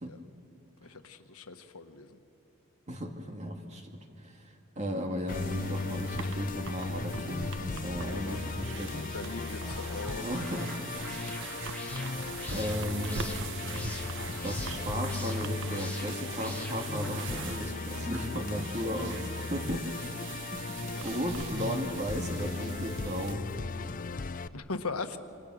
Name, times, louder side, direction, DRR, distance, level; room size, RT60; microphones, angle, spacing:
voice 1, 0.8-2.2 7.9-8.5 9.1-10.3 20.8-21.2 24.5-25.2, left 3 dB, 85° left, 8 dB, 1.4 m, -40 dB
voice 2, 2.9-4.4 4.8-9.1 10.2-10.8 12.5-13.3 14.4-20.0 20.5-23.6, equal, 30° right, 3 dB, 2.4 m, -35 dB
Musical instrument, 5.3-24.5, left 4 dB, 40° left, 0.5 m, -37 dB
sound 1, 5.3-23.3, right 5 dB, 60° right, 1.1 m, -42 dB
sound 2, 9.5-17.7, left 2 dB, 5° left, 2.5 m, -46 dB
28.0 x 26.5 x 6.5 m, 2.6 s
head